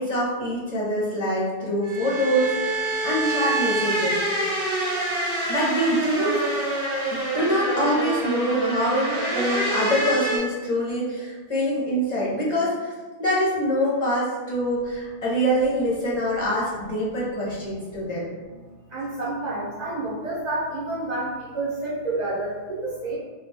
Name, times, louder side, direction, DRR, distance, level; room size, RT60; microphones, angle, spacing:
voice 1, 0.0-2.8 3.0-4.2 5.5-6.4 7.1-12.9 13.2-18.3, equal, 40° left, -7 dB, 0.7 m, -24 dB
sound 1, 1.8-10.4, right 2 dB, 65° right, 1.1 m, -26 dB
voice 2, 18.9-23.2, right 2 dB, 45° right, -8 dB, 0.7 m, -29 dB
2.3 x 2.2 x 3.9 m, 1.3 s
omnidirectional pair, 1.2 m